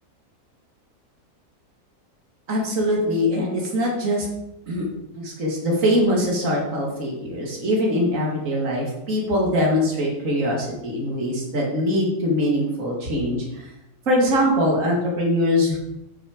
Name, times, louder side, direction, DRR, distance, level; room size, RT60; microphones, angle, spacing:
voice 1, 2.5-4.3 4.7-4.9 5.1-13.7 14.1-15.8, equal, 55° right, -2 dB, 2.5 m, -22 dB
8.6 x 6.6 x 5.1 m, 0.88 s
omnidirectional pair, 1.7 m